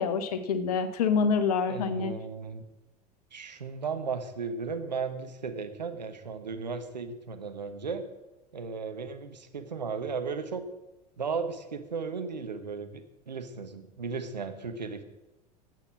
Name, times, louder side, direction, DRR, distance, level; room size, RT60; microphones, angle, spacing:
voice 1, 0.0-2.1, left 5 dB, 65° left, 10 dB, 1.2 m, -26 dB
voice 2, 1.6-2.6 3.3-8.0 8.5-10.6 11.2-15.0, right 5 dB, 85° right, 8 dB, 1.2 m, -35 dB
12.0 x 8.4 x 6.0 m, 0.98 s
figure-of-eight pair, 80°, 21 cm